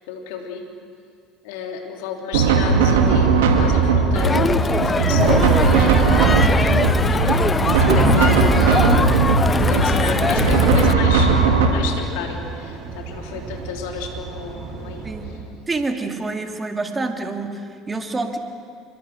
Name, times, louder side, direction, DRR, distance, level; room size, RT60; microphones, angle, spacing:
voice 1, 0.1-0.6 1.4-9.1 9.5-15.4, left 5 dB, 70° left, 3 dB, 3.2 m, -32 dB
sound 1, 2.3-11.7, right 5 dB, 75° right, 2.3 m, -17 dB
Crowd, 4.2-10.9, left 4 dB, 25° left, 0.6 m, -21 dB
sound 2, 5.2-15.4, right 4 dB, 50° right, 4.2 m, -34 dB
voice 2, 15.0-15.4 15.7-18.4, right 3 dB, 20° right, 5 dB, 2.5 m, -27 dB
25.5 x 22.5 x 6.4 m, 2.2 s
hypercardioid pair, 65°, 0 cm